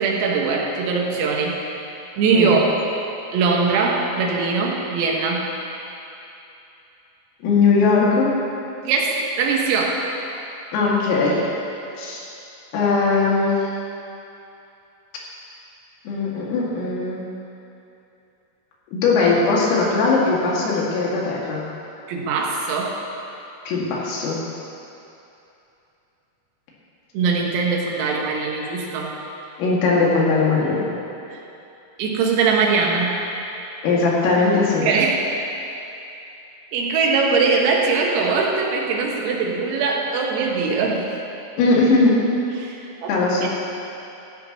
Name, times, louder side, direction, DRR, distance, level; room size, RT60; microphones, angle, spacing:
voice 1, 0.0-1.6 2.2-2.8 3.3-5.5 8.8-10.0 22.1-22.9 27.1-29.1 31.3-31.4 32.0-33.2 34.7-35.2 36.7-41.1 42.6-43.5, right 4 dB, 80° right, -1 dB, 4.1 m, -21 dB
voice 2, 7.4-8.3 10.7-11.4 12.0-12.2 12.7-13.5 16.1-17.2 18.9-21.6 23.7-24.4 29.6-30.9 33.8-34.9 41.6-42.1 43.1-43.5, left 3 dB, 80° left, -5 dB, 4.8 m, -19 dB
17.0 x 15.0 x 3.0 m, 2.8 s
omnidirectional pair, 6.0 m